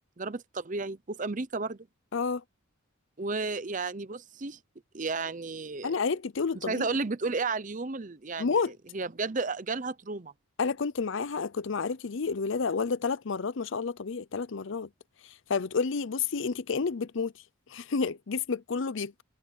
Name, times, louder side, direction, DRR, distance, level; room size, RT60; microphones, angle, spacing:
voice 1, 0.2-1.9 3.2-4.6 4.9-5.9 6.7-8.5 8.9-10.3, right 3 dB, 35° right, 0.7 m, -32 dB
voice 2, 2.1-2.4 5.8-6.9 8.4-8.7 10.6-14.9 15.5-17.3 17.7-19.2, left 5 dB, 65° left, 0.6 m, -30 dB
head